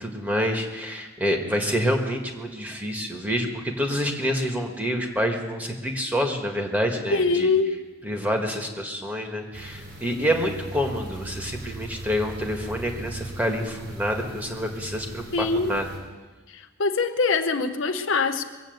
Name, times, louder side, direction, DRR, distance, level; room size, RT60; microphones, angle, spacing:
voice 1, 0.0-7.5 8.0-15.9, equal, 10° right, 2 dB, 1.7 m, -27 dB
voice 2, 7.1-7.8 15.3-15.7 16.5-18.4, left 4 dB, 70° left, 7 dB, 0.8 m, -23 dB
sound 1, 9.5-16.0, right 1 dB, 65° right, 5.6 m, -39 dB
22.0 x 8.1 x 8.0 m, 1.3 s
head